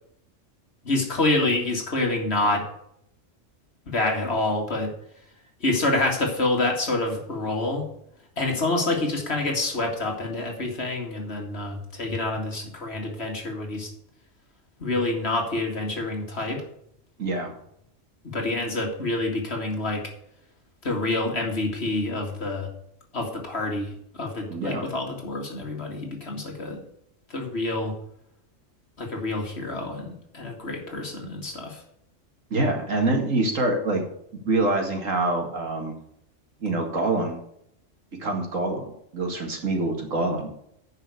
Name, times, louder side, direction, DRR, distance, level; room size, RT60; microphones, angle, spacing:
voice 1, 0.8-2.6 3.9-4.9 5.6-7.9 8.4-13.9 14.8-16.6 18.2-20.0 20.8-22.7 23.1-26.8 27.3-27.9 29.0-31.8, left 2 dB, 55° left, 1 dB, 2.4 m, -27 dB
voice 2, 17.2-17.5 24.5-24.9 32.5-34.1 34.5-35.9 36.6-37.4 38.2-40.5, right 2 dB, 80° right, 2 dB, 2.5 m, -25 dB
9.9 x 5.5 x 8.3 m, 0.73 s
omnidirectional pair, 1.3 m